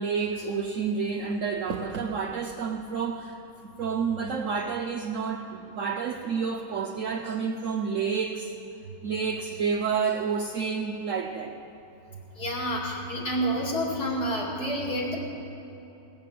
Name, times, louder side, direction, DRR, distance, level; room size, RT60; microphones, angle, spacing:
voice 1, 0.0-8.5 9.0-11.6, right 5 dB, 65° right, 0.8 m, -29 dB
voice 2, 12.4-15.2, equal, 60° left, 2.9 m, -29 dB
17.5 x 7.5 x 7.4 m
omnidirectional pair, 1.9 m